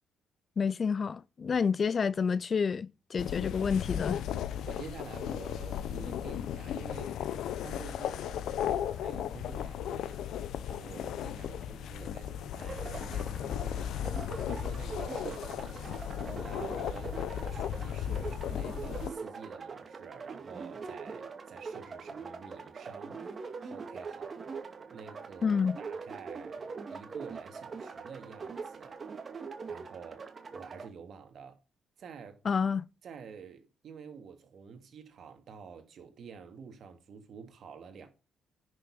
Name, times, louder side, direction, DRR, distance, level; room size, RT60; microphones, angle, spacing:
voice 1, 0.6-4.2 25.4-25.8 32.4-32.9, left 6 dB, 40° left, 0.4 m, -29 dB
sound 1, 3.2-19.1, left 10 dB, 75° left, 0.9 m, -36 dB
voice 2, 4.6-7.1 7.6-10.2 10.7-14.1 14.5-23.2 23.6-24.3 24.9-29.0 29.7-30.2 30.5-31.6 32.0-32.4 33.0-38.1, right 6 dB, 60° right, 2.5 m, -49 dB
sound 2, 12.6-30.9, right 5 dB, 35° right, 2.3 m, -43 dB
10.0 x 6.8 x 5.6 m
cardioid pair, 90°, 0 cm